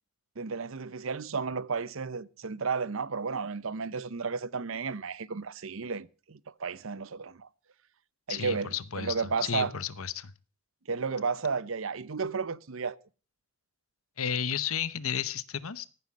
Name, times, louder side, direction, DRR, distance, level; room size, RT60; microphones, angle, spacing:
voice 1, 0.4-7.5 8.3-9.7 10.9-13.0, right 5 dB, 70° right, 0.7 m, -33 dB
voice 2, 8.3-10.3 14.2-15.9, left 8 dB, 80° left, 0.9 m, -33 dB
15.0 x 9.5 x 7.3 m
head